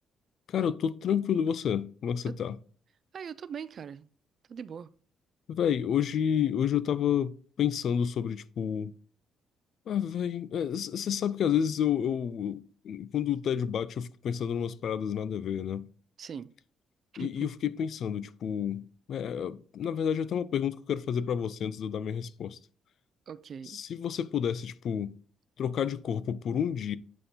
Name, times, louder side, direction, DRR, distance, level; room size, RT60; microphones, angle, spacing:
voice 1, 0.5-2.6 5.5-8.9 9.9-15.9 17.2-22.6 23.7-25.2 25.6-27.0, left 8 dB, 65° left, 0.4 m, -30 dB
voice 2, 3.1-4.1 4.5-4.9 16.2-16.5 17.1-17.3 23.3-23.8, right 7 dB, 55° right, 0.4 m, -40 dB
9.2 x 3.7 x 4.1 m
cardioid pair, 90°, 0 cm